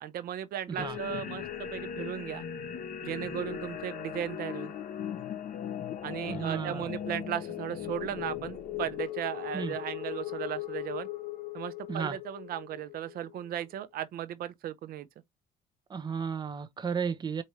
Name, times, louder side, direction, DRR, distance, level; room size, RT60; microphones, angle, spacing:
voice 1, 0.0-2.4 3.0-4.7 6.0-11.1 11.5-15.1, right 11 dB, 65° right, 0.6 m, -36 dB
sound 1, 0.8-13.5, left 10 dB, 55° left, 0.8 m, -38 dB
voice 2, 6.2-6.9 9.5-9.8 11.9-12.2 15.9-17.4, right 6 dB, 25° right, 0.6 m, -33 dB
4.7 x 2.7 x 3.0 m
cardioid pair, 110°, 17 cm